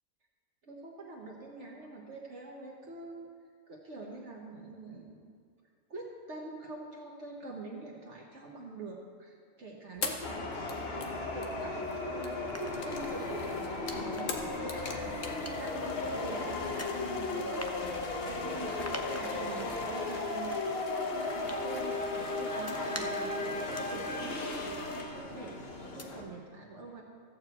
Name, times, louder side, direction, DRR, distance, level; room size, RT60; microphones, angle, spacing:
voice 1, 0.7-3.3 3.7-5.3 5.9-10.4 11.0-27.0, right 2 dB, 55° right, -2 dB, 1.4 m, -45 dB
sound 1, 10.0-25.0, left 3 dB, 70° left, 1.3 m, -40 dB
sound 2, 10.2-26.2, left 2 dB, 50° left, 1.3 m, -37 dB
sound 3, 11.0-11.8 12.2-25.4 25.8-26.0, left 1 dB, 20° left, 0.4 m, -49 dB
14.0 x 4.8 x 7.6 m, 2.1 s
omnidirectional pair, 1.4 m